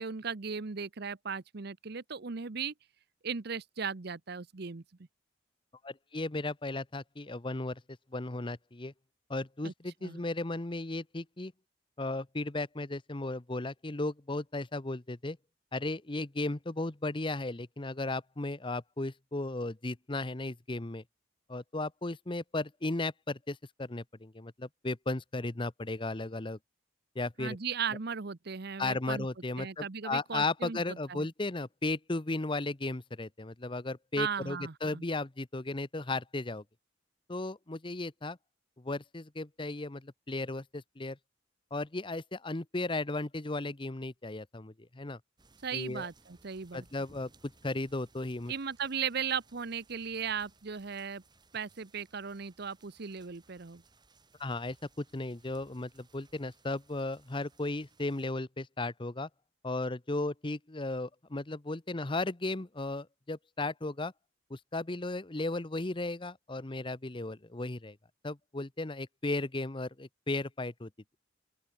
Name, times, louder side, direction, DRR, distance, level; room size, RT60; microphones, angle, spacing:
voice 1, 0.0-2.7 3.2-4.8 9.6-9.7 10.0-10.2 27.4-29.3 29.6-30.8 31.1-31.3 34.2-35.0 45.6-46.8 48.5-51.2 51.5-53.8, right 6 dB, 55° right, 0.8 m, -37 dB
voice 2, 5.8-7.8 8.1-8.9 9.3-11.5 12.0-15.4 15.7-21.0 21.5-26.6 27.1-27.6 28.8-36.6 37.3-38.4 38.8-41.2 41.7-45.2 45.7-46.1 46.7-48.5 54.4-59.3 59.6-64.1 64.5-68.0 68.2-70.9, left 2 dB, 25° left, 0.9 m, -35 dB
sound 1, 45.4-58.3, right 3 dB, 25° right, 4.4 m, -64 dB
open air
head